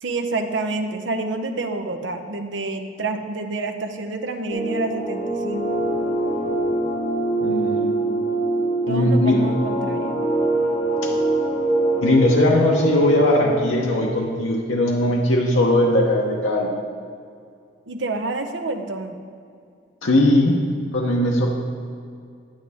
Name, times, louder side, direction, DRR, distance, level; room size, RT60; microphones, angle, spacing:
voice 1, 0.0-5.6 8.9-10.2 17.9-19.2, right 3 dB, 75° right, 6 dB, 0.7 m, -28 dB
sound 1, 4.5-13.7, right 2 dB, 35° left, 0.9 m, -23 dB
voice 2, 7.4-7.9 8.9-9.4 11.0-11.1 12.0-16.7 20.0-20.6 20.9-21.5, left 1 dB, 85° left, -1 dB, 0.9 m, -19 dB
9.0 x 9.0 x 3.5 m, 2.3 s
head